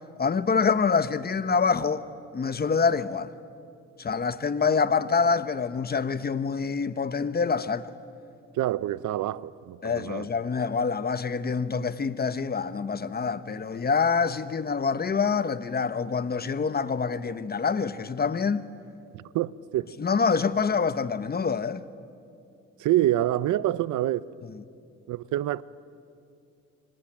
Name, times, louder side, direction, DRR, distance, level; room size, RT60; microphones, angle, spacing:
voice 1, 0.2-2.0 2.3-3.3 4.0-7.9 9.8-18.6 20.0-21.8, left 5 dB, 30° left, 1.2 m, -26 dB
voice 2, 8.6-10.3 19.1-19.9 22.8-24.2 25.1-25.6, right 14 dB, 80° right, 0.8 m, -26 dB
27.5 x 24.5 x 8.9 m
cardioid pair, 90°, 30 cm